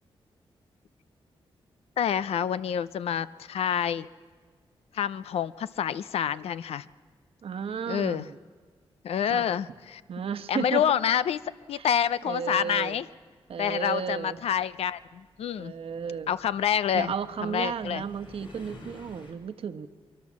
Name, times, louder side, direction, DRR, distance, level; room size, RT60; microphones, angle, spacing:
voice 1, 2.0-4.1 4.9-6.8 7.9-8.2 9.0-10.0 10.5-11.4 11.7-13.1 13.6-15.7 16.3-17.1 17.4-18.0, left 9 dB, 85° left, 15 dB, 0.6 m, -27 dB
voice 2, 7.4-8.4 9.2-9.5 10.1-10.9 11.7-11.9 12.2-13.0 13.5-14.4 15.6-16.4 16.9-19.9, right 6 dB, 70° right, 9 dB, 1.1 m, -33 dB
sound 1, 12.1-12.2 13.2-19.3, left 1 dB, 55° left, 5.5 m, -51 dB
23.5 x 23.5 x 7.4 m, 1.5 s
cardioid pair, 80°, 10 cm